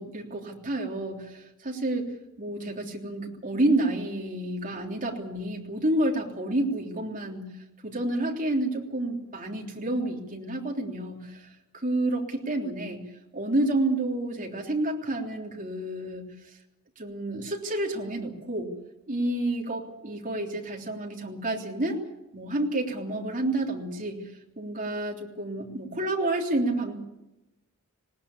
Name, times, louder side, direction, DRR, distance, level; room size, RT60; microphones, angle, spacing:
voice 1, 0.0-2.1 2.4-7.5 7.8-11.4 11.7-13.0 13.3-16.3 17.0-18.7 19.1-22.0 22.3-24.2 24.6-26.9, right 1 dB, 35° right, 0 dB, 3.4 m, -29 dB
20.0 x 18.5 x 8.6 m, 0.95 s
head